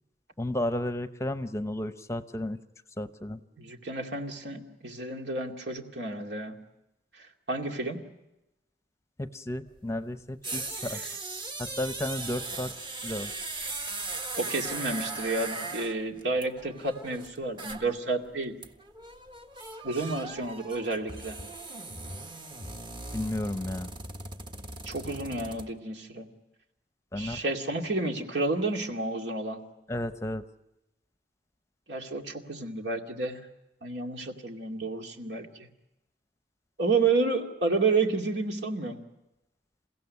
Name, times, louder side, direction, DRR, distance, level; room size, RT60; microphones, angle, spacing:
voice 1, 0.4-2.6 3.0-3.4 9.2-11.0 11.6-12.7 13.0-13.3 23.1-23.9 27.1-27.4 29.9-30.4, left 1 dB, 15° left, 10 dB, 0.8 m, -33 dB
voice 2, 3.6-6.6 7.5-8.0 10.9-11.0 14.4-18.5 19.8-21.4 24.8-26.3 27.2-29.6 31.9-33.4 33.8-35.5 36.8-39.0, right 3 dB, 75° right, 3 dB, 2.5 m, -30 dB
sound 1, 9.7-9.8 10.2-18.0 18.3-18.4 18.6-25.7, right 3 dB, 30° right, 1.4 m, -38 dB
29.0 x 16.0 x 9.6 m, 0.94 s
head